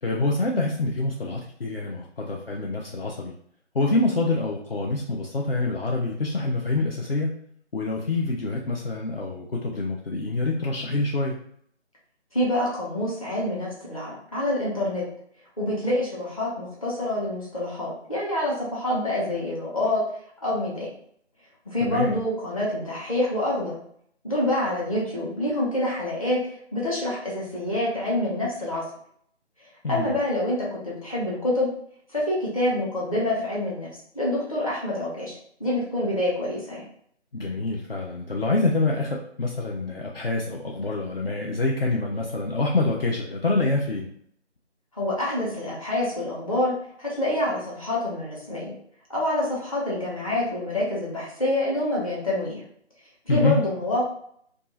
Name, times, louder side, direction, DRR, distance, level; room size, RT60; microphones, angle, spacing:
voice 1, 0.0-3.3 3.7-7.4 7.7-11.4 21.8-22.1 29.8-30.1 37.3-44.1 53.3-53.6, left 2 dB, 55° left, -2 dB, 0.5 m, -26 dB
voice 2, 12.3-15.0 15.6-20.0 20.4-20.9 21.7-23.8 24.2-26.4 26.7-28.8 29.9-31.7 32.1-33.9 34.1-36.8 45.0-48.7 49.1-52.6 53.3-54.0, left 1 dB, 30° left, -6 dB, 0.9 m, -26 dB
2.6 x 2.3 x 3.9 m, 0.65 s
figure-of-eight pair, 160°, 35 cm